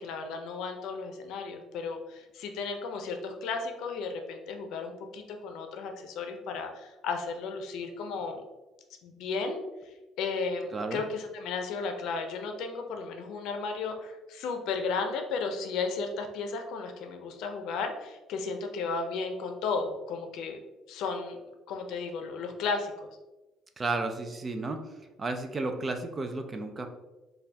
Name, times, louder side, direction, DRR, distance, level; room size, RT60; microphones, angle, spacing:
voice 1, 0.0-8.4 9.0-9.6 10.2-20.6 20.9-21.4 21.7-22.9, left 4 dB, 75° left, 5 dB, 0.6 m, -34 dB
voice 2, 10.7-11.0 23.8-24.8 25.2-26.9, right 3 dB, 25° right, 6 dB, 0.4 m, -32 dB
4.1 x 2.3 x 3.4 m, 1.1 s
cardioid pair, 140°, 0 cm